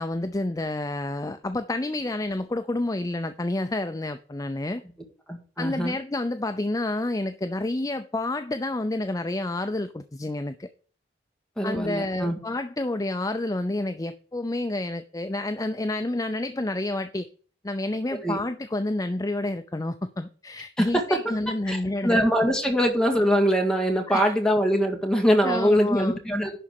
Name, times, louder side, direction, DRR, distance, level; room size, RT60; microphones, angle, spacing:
voice 1, 0.0-4.8 5.6-10.7 11.6-17.3 17.6-22.2 24.1-24.3 25.4-26.2, left 2 dB, 20° left, 0.5 m, -29 dB
voice 2, 5.3-6.0 11.6-12.4 18.2-18.4 20.8-21.2 21.7-26.5, equal, 5° left, 1.8 m, -23 dB
11.0 x 4.2 x 6.6 m
head